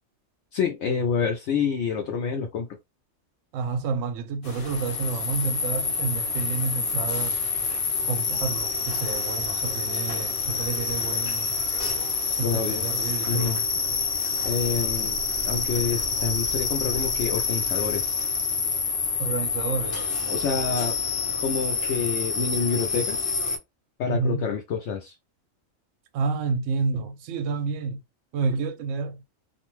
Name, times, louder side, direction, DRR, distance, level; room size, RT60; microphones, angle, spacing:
voice 1, 0.5-2.7 12.4-12.8 13.3-13.6 14.4-15.2 15.4-18.1 20.3-21.0 21.4-23.3 24.0-25.2, left 5 dB, 70° left, 0.8 m, -27 dB
voice 2, 3.5-7.4 8.0-11.6 12.4-13.7 19.2-20.1 24.1-24.5 26.1-28.0 28.3-29.2, right 4 dB, 70° right, 0.9 m, -29 dB
sound 1, 4.4-23.6, left 5 dB, 55° left, 1.1 m, -27 dB
2.5 x 2.2 x 3.0 m
omnidirectional pair, 1.4 m